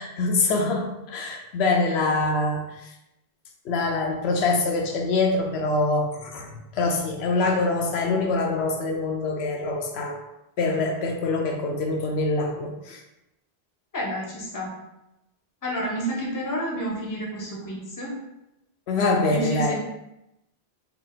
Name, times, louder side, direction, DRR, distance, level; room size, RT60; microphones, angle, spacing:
voice 1, 0.0-2.9 3.7-6.5 6.7-10.2 10.6-13.0 18.9-19.7, left 3 dB, 75° left, 2 dB, 0.8 m, -24 dB
voice 2, 13.9-14.8 15.6-18.1 19.3-19.8, right 1 dB, 20° left, -2 dB, 0.7 m, -30 dB
3.4 x 2.4 x 3.8 m, 0.90 s
omnidirectional pair, 1.1 m